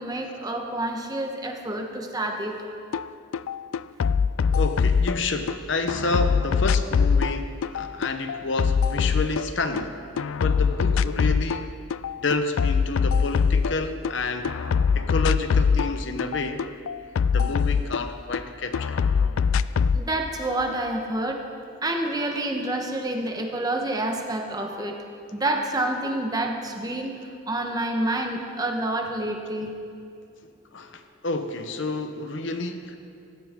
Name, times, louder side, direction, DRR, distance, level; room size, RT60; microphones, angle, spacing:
voice 1, 0.0-2.7 19.9-21.4 21.8-25.0 25.3-27.1 27.5-29.7, right 1 dB, 20° right, 3 dB, 1.1 m, -28 dB
sound 1, 2.9-3.1 3.3-5.5 5.9-9.9 10.2-11.6 11.9-14.1 14.4-18.4 18.7-20.0, left 6 dB, 85° left, 0.4 m, -23 dB
voice 2, 4.5-11.7 12.2-14.6 14.9-16.6 17.3-19.0 30.7-33.0, left 3 dB, 70° left, 7 dB, 1.0 m, -29 dB
18.5 x 16.0 x 3.7 m, 2.5 s
head